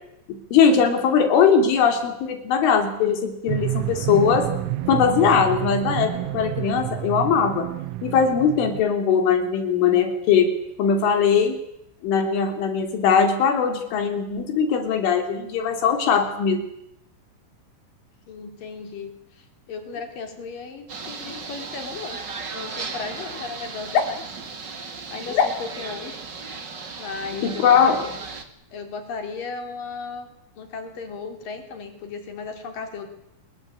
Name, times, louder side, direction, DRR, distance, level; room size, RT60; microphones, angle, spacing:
voice 1, 0.5-4.5 4.9-7.7 8.0-10.5 10.8-11.6 12.0-16.7 25.3-25.5 27.4-28.0, left 6 dB, 75° left, 7 dB, 5.7 m, -20 dB
sound 1, 3.5-8.8, right 15 dB, 90° right, 3.8 m, -29 dB
voice 2, 18.3-22.2 22.5-24.2 24.7-26.2 27.0-28.2 28.7-30.3 30.6-33.1, left 4 dB, 45° left, 7 dB, 4.8 m, -36 dB
sound 2, 20.9-28.4, right 4 dB, 35° right, 2.0 m, -36 dB
28.5 x 21.5 x 8.9 m, 0.80 s
omnidirectional pair, 5.6 m